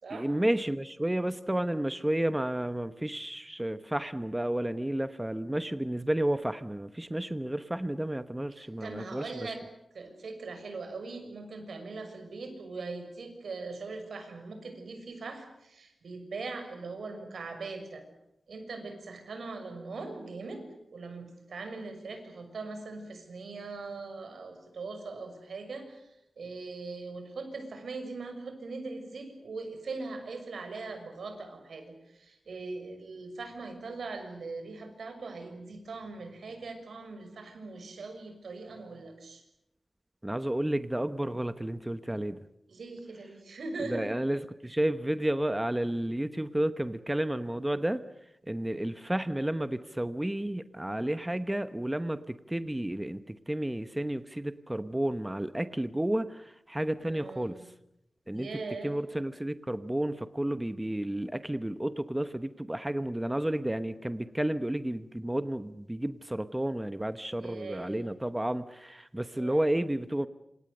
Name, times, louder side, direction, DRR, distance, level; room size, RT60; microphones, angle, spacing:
voice 1, 0.1-9.5 40.2-42.4 43.9-48.0 48.5-57.6 58.3-58.5 58.8-70.3, right 1 dB, 10° right, 11 dB, 0.9 m, -31 dB
voice 2, 8.6-9.6 9.9-18.0 18.5-39.4 42.7-44.2 57.0-57.7 58.3-58.9 67.4-68.1 69.3-69.7, right 3 dB, 80° right, 7 dB, 6.3 m, -41 dB
27.5 x 27.0 x 6.7 m, 0.84 s
wide cardioid pair, 135°, 0 cm